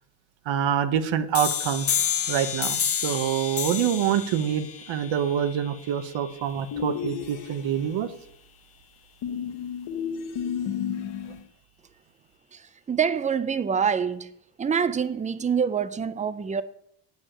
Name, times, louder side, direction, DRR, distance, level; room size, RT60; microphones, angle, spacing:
voice 1, 0.5-8.1, right 9 dB, 80° right, 1.0 m, -26 dB
sound 1, 1.3-6.8, left 8 dB, 30° left, 0.6 m, -30 dB
sound 2, 6.7-8.0 9.2-11.4, left 8 dB, 70° left, 1.3 m, -32 dB
voice 2, 12.5-14.3 14.6-16.6, right 7 dB, 15° right, 0.4 m, -26 dB
8.7 x 6.3 x 7.2 m
cardioid pair, 135°, 45 cm